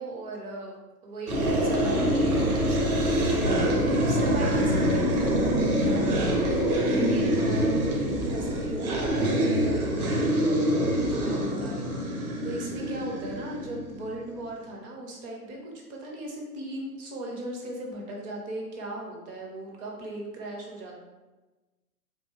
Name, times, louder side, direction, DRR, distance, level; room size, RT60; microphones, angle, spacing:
voice 1, 0.0-21.0, right 1 dB, 20° right, -1 dB, 0.4 m, -38 dB
sound 1, 1.3-14.2, equal, 70° right, 1.0 m, -25 dB
3.6 x 2.4 x 2.8 m, 1.2 s
hypercardioid pair, 120°, 46 cm